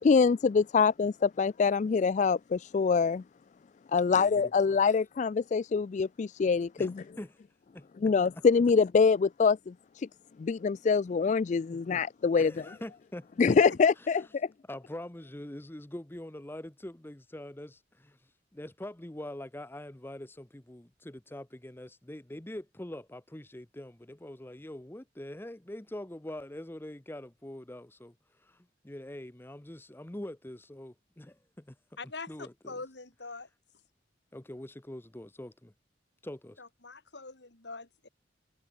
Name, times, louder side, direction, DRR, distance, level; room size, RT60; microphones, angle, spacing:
voice 1, 0.0-3.2 3.9-7.0 8.0-10.1 10.4-12.8 13.4-14.5, left 5 dB, 40° left, 0.3 m, -25 dB
voice 2, 6.8-7.3 7.7-7.8 11.7-11.8 12.4-13.3 14.7-31.8 32.3-32.8 34.3-35.7 36.2-36.6, left 1 dB, 10° left, 0.7 m, -44 dB
voice 3, 32.0-32.3 32.7-33.5 36.6-38.1, left 3 dB, 65° left, 2.6 m, -43 dB
head